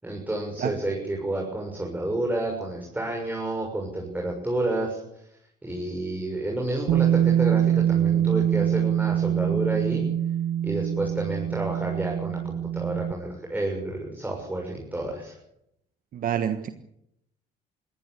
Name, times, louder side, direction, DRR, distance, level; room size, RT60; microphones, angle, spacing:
voice 1, 0.0-5.0 5.6-10.0 10.6-15.3, right 1 dB, 10° right, -1 dB, 6.8 m, -30 dB
Bass guitar, 6.9-13.1, right 10 dB, 80° right, 1.2 m, -24 dB
voice 2, 16.1-16.7, right 9 dB, 55° right, 9 dB, 1.5 m, -27 dB
22.0 x 17.5 x 8.4 m, 0.76 s
cardioid pair, 110°, 17 cm